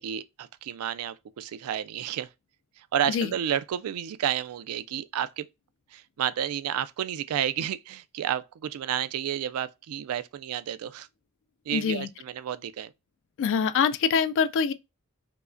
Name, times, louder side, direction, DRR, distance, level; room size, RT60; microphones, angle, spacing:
voice 1, 0.0-2.3 2.8-5.5 5.9-11.1 11.7-12.9, right 10 dB, 70° right, 0.3 m, -31 dB
voice 2, 11.7-12.1 13.4-14.7, left 6 dB, 55° left, 0.3 m, -24 dB
4.6 x 2.1 x 2.5 m
head